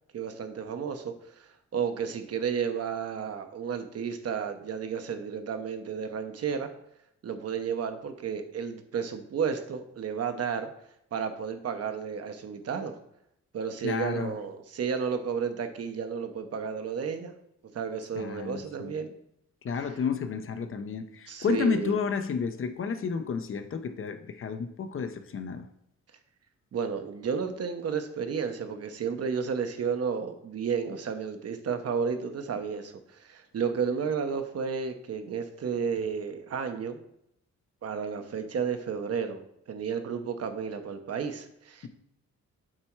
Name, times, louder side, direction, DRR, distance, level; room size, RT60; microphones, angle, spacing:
voice 1, 0.1-6.7 7.2-10.7 11.1-12.9 13.5-17.4 17.7-19.1 21.3-21.9 26.7-37.0 37.8-41.9, right 6 dB, 55° right, 0.9 m, -32 dB
voice 2, 13.8-14.4 18.2-18.9 19.6-25.7, left 5 dB, 45° left, 0.7 m, -31 dB
7.6 x 4.3 x 4.6 m
cardioid pair, 120°, 29 cm